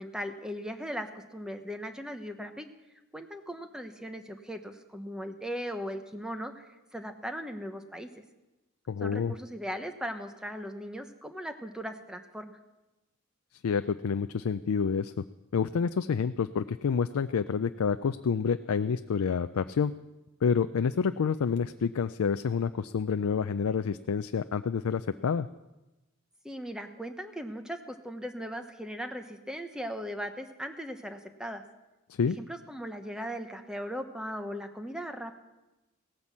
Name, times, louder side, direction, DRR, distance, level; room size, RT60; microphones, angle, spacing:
voice 1, 0.0-2.7 3.1-8.1 9.0-12.5 26.4-31.6 32.4-35.3, equal, 5° right, 6 dB, 1.0 m, -38 dB
voice 2, 8.9-9.3 13.6-15.2 15.5-19.9 20.4-25.5 32.2-32.4, left 6 dB, 80° left, 10 dB, 0.4 m, -28 dB
17.5 x 9.6 x 7.3 m, 1.1 s
head